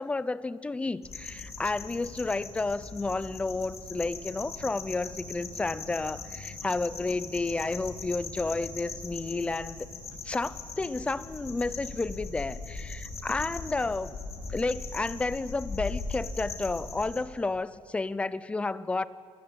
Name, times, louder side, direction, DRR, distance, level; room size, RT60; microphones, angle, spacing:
voice 1, 0.0-9.8 10.2-14.2 14.5-19.1, left 3 dB, 10° left, 17 dB, 0.6 m, -31 dB
sound 1, 1.0-17.2, left 4 dB, 30° left, 3.6 m, -40 dB
27.0 x 20.0 x 8.8 m, 2.2 s
cardioid pair, 155°, 10 cm